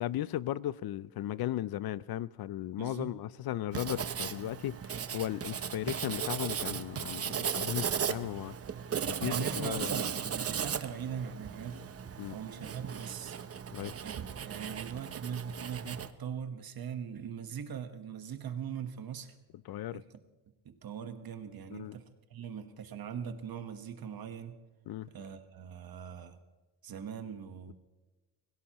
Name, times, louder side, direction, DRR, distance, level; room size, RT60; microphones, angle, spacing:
voice 1, 0.0-8.6 9.0-10.1 12.2-12.4 13.7-14.0 19.7-20.0 21.7-22.0 24.9-25.1, left 13 dB, 70° left, 0.5 m, -36 dB
voice 2, 2.8-3.1 9.2-11.8 12.3-13.4 14.0-19.3 19.9-20.0 20.6-24.6 25.1-26.4 26.8-27.7, right 8 dB, 65° right, 1.4 m, -41 dB
Writing, 3.7-16.1, right 7 dB, 40° right, 0.7 m, -36 dB
21.5 x 16.5 x 3.0 m
cardioid pair, 115°, 38 cm